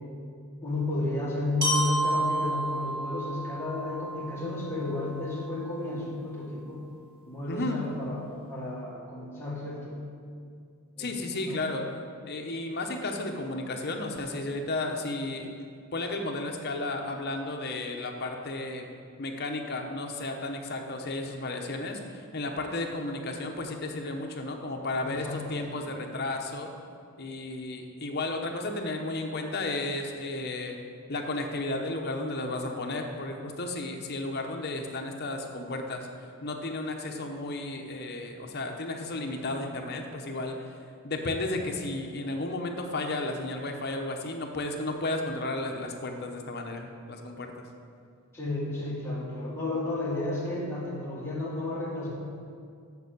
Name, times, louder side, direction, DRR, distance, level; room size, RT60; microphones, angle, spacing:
voice 1, 0.6-6.8 7.2-10.0 11.0-11.6 25.0-25.9 48.3-52.1, left 2 dB, 10° left, -6 dB, 1.9 m, -33 dB
Glockenspiel, 1.6-5.6, right 1 dB, 45° right, 2.1 m, -31 dB
voice 2, 7.5-7.8 11.0-11.8 12.2-15.5 15.9-18.8 19.2-26.7 27.2-30.8 31.1-36.1 36.4-40.6 41.0-47.6 49.2-49.4, left 2 dB, 45° left, 3 dB, 0.9 m, -33 dB
7.2 x 7.1 x 6.8 m, 2.2 s
head